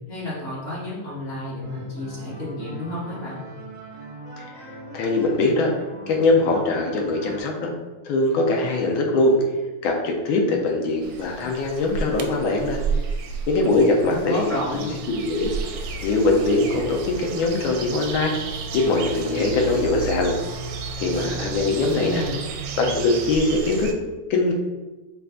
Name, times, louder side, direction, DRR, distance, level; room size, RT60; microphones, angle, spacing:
voice 1, 0.1-3.4 14.0-14.9 21.7-22.4, left 1 dB, 35° left, -8 dB, 1.5 m, -31 dB
sound 1, 1.6-7.4, equal, 60° right, 0.8 m, -40 dB
voice 2, 4.9-5.7 6.1-7.7 8.0-9.4 9.8-12.8 13.5-15.5 16.0-18.3 18.7-20.4 21.0-22.2 22.8-23.9 24.3-24.5, left 2 dB, 70° left, 1 dB, 1.5 m, -22 dB
sound 2, 11.0-23.9, right 5 dB, 75° right, 1.2 m, -32 dB
5.6 x 2.5 x 3.7 m, 1.2 s
omnidirectional pair, 2.4 m